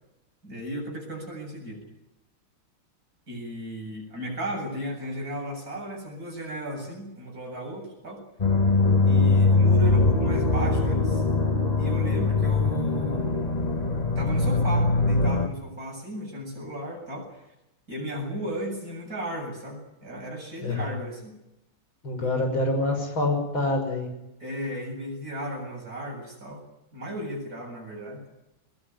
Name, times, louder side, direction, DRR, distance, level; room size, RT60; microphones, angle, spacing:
voice 1, 0.4-1.8 3.3-8.2 9.0-11.2 11.8-13.5 14.1-17.4 17.9-21.4 22.2-22.3 24.4-26.6 26.9-28.2, right 1 dB, 40° right, 1 dB, 8.5 m, -35 dB
sound 1, 8.4-15.5, left 3 dB, 20° left, 1.3 m, -22 dB
voice 2, 20.6-21.0 22.0-24.1, left 2 dB, 65° left, 3 dB, 7.2 m, -26 dB
21.0 x 21.0 x 9.5 m, 0.89 s
omnidirectional pair, 2.4 m